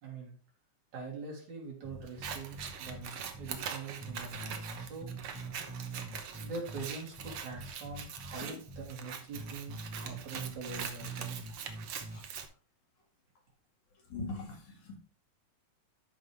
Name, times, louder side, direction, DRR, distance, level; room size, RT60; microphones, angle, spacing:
voice 1, 0.0-0.4 0.9-5.1 6.4-11.4, right 4 dB, 80° right, -2 dB, 4.4 m, -43 dB
sound 1, 1.8-3.0 3.3-3.5 4.0-6.9 7.2-8.4 8.7-8.8 9.3-12.2, right 3 dB, 10° right, 2.7 m, -43 dB
Scissors, 2.1-12.5, right 7 dB, 60° right, 1.5 m, -43 dB
voice 2, 14.1-15.0, left 3 dB, 80° left, 0 dB, 3.6 m, -42 dB
13.0 x 5.4 x 3.4 m, 0.36 s
omnidirectional pair, 3.3 m